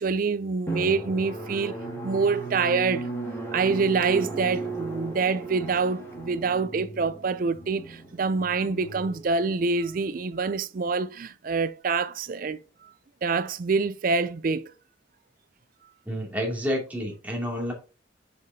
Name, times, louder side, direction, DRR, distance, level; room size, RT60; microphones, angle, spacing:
voice 1, 0.0-1.7 2.0-3.1 3.5-12.9 13.2-14.7, right 4 dB, 45° right, 0.4 m, -26 dB
Drum, 0.7-9.9, right 3 dB, 15° left, 2.2 m, -35 dB
voice 2, 16.1-17.7, equal, 10° right, 2.5 m, -29 dB
6.8 x 6.6 x 2.8 m
head